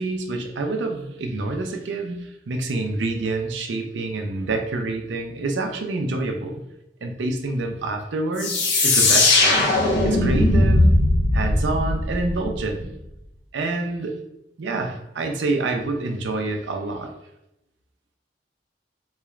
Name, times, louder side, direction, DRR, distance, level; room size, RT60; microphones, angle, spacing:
voice 1, 0.0-6.6 7.0-8.5 8.8-9.7 10.0-11.0 11.3-12.9 13.5-14.2 14.6-17.1, right 2 dB, 70° right, 4 dB, 0.5 m, -27 dB
sound 1, 8.4-12.9, left 2 dB, 80° left, 0.9 m, -19 dB
3.9 x 3.1 x 2.4 m, 0.86 s
head